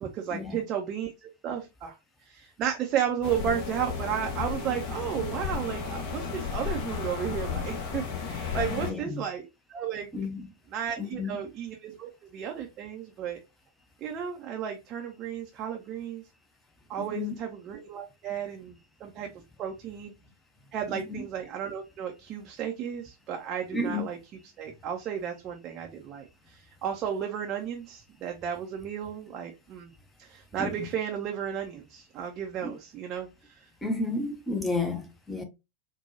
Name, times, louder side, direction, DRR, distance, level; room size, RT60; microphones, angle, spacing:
voice 1, 0.0-10.1 10.7-13.4 14.0-16.2 16.9-19.3 19.6-20.1 20.7-24.2 24.6-29.9 30.2-33.6, right 8 dB, 35° right, 0.5 m, -33 dB
sound 1, 3.2-8.9, left 6 dB, 45° left, 1.0 m, -33 dB
voice 2, 8.7-9.2 10.1-10.5 11.0-11.4 17.0-17.4 20.9-21.2 23.7-24.1 30.6-30.9 32.6-32.7 33.8-35.4, left 3 dB, 10° left, 0.7 m, -32 dB
4.2 x 2.2 x 2.7 m
figure-of-eight pair, 90°, 0 cm